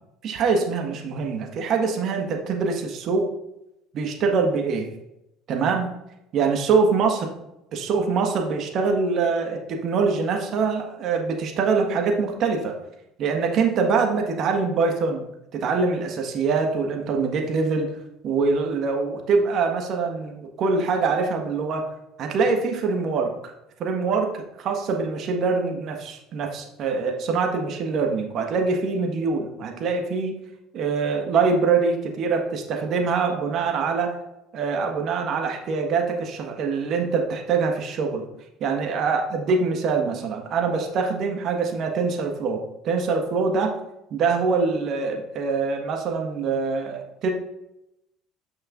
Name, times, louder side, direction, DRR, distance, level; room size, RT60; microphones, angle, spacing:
voice 1, 0.2-3.3 3.9-4.9 5.5-5.9 6.3-7.3 7.7-12.7 13.2-15.2 15.5-17.9 18.2-21.8 22.2-23.5 23.8-30.3 30.7-34.1 34.5-38.2 38.6-43.7 44.1-47.3, right 4 dB, 55° right, 3 dB, 1.4 m, -24 dB
8.3 x 6.3 x 2.5 m, 0.85 s
hypercardioid pair, 70°, 0 cm